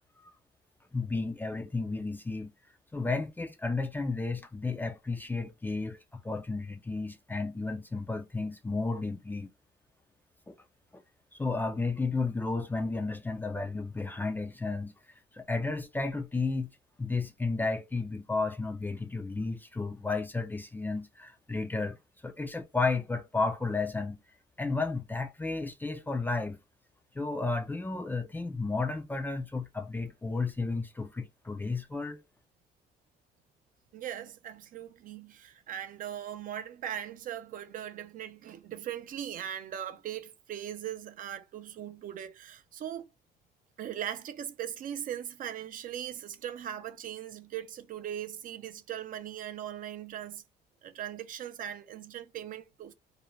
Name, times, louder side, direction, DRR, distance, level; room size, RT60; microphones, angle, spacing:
voice 1, 0.9-2.5 2.9-9.5 10.5-10.6 10.9-11.0 11.4-14.9 15.3-16.7 17.0-22.0 22.2-24.2 24.6-26.6 27.1-32.2, left 3 dB, 10° left, 0.4 m, -32 dB
voice 2, 33.9-43.1 43.8-50.4 50.8-52.9, right 10 dB, 55° right, 0.5 m, -39 dB
2.5 x 2.1 x 3.0 m
cardioid pair, 110°, 17 cm